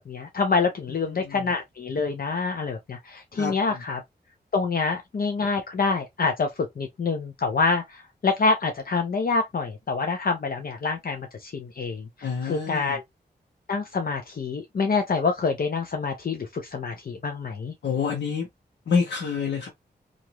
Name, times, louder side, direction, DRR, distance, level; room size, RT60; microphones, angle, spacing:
voice 1, 0.0-4.0 4.5-13.0 13.7-17.7, left 4 dB, 55° left, 0.7 m, -26 dB
voice 2, 0.9-1.4 3.3-3.8 12.2-13.0 17.8-18.5 18.9-19.7, left 5 dB, 90° left, 1.0 m, -28 dB
2.9 x 2.6 x 2.9 m
cardioid pair, 65°, 17 cm